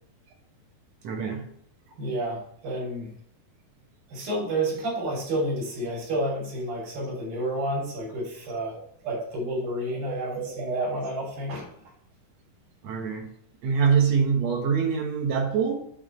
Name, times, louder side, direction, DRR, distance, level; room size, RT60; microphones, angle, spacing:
voice 1, 1.0-1.5 9.0-9.3 10.1-11.0 12.8-13.3 13.6-15.8, right 6 dB, 65° right, 2 dB, 1.9 m, -25 dB
voice 2, 2.0-3.1 4.1-8.8 9.0-11.7, right 1 dB, 80° right, -3 dB, 4.7 m, -30 dB
8.9 x 3.4 x 6.6 m, 0.67 s
omnidirectional pair, 4.0 m